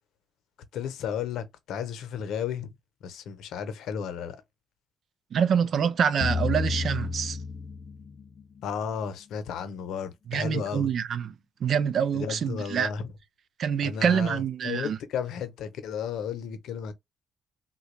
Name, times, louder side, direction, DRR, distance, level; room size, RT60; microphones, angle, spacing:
voice 1, 0.7-2.7 3.0-4.4 8.6-10.9 12.1-13.1 13.8-16.9, left 7 dB, 80° left, 0.7 m, -33 dB
voice 2, 5.3-7.4 10.3-11.3 11.6-12.9 13.6-15.0, right 7 dB, 60° right, 0.4 m, -26 dB
sound 1, 6.2-8.4, left 4 dB, 40° left, 0.3 m, -31 dB
3.7 x 2.2 x 3.2 m
cardioid pair, 90°, 0 cm